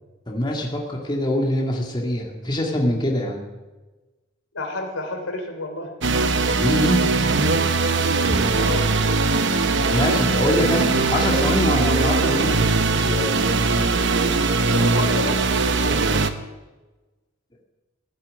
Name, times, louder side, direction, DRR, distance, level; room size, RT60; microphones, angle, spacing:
voice 1, 0.3-3.4 6.5-7.1 9.8-13.4, left 1 dB, 20° left, -1 dB, 2.2 m, -24 dB
voice 2, 4.5-5.9 8.5-8.9 14.6-16.0, left 1 dB, 85° left, 3 dB, 3.3 m, -30 dB
sound 1, 6.0-16.3, right 3 dB, 60° right, 1.0 m, -20 dB
16.0 x 9.0 x 8.9 m, 1.2 s
head